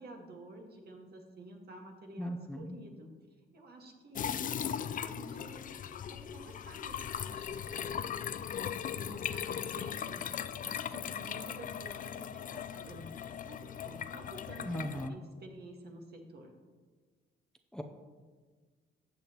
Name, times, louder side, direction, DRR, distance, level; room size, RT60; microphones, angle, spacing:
voice 1, 0.0-3.1 3.5-5.7 6.1-8.2 9.0-14.7 15.1-16.5, right 2 dB, 55° right, 2 dB, 1.8 m, -51 dB
voice 2, 2.2-2.8 14.6-15.1 17.7-17.8, equal, 5° left, 4 dB, 0.7 m, -38 dB
sound 1, 4.2-15.1, left 9 dB, 45° left, 0.4 m, -38 dB
14.0 x 7.6 x 3.0 m, 1.4 s
cardioid pair, 90°, 20 cm